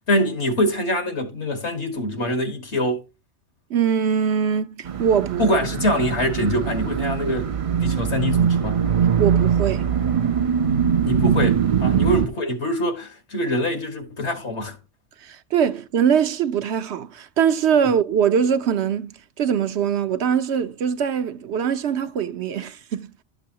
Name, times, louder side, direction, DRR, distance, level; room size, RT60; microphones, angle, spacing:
voice 1, 0.1-3.0 5.4-7.5 7.8-8.8 11.0-14.8, equal, 70° left, 2.2 m, -24 dB
voice 2, 3.7-5.5 9.2-10.0 11.9-12.0 15.2-23.1, right 8 dB, 70° right, 1.0 m, -22 dB
sound 1, 4.9-12.3, right 7 dB, 40° right, 0.5 m, -22 dB
12.0 x 6.9 x 2.8 m
omnidirectional pair, 1.2 m